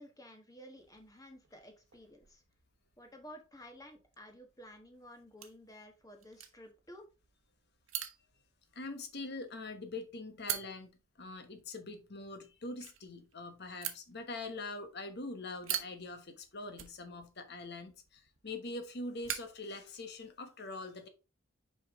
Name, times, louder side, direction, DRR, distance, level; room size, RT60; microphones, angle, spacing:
voice 1, 0.0-2.4 3.0-7.1, equal, 15° left, 1.4 m, -53 dB
sound 1, 0.8-20.4, right 11 dB, 65° right, 1.0 m, -47 dB
voice 2, 8.7-10.9 11.2-21.1, left 2 dB, 50° left, 1.2 m, -43 dB
5.6 x 5.4 x 3.7 m
head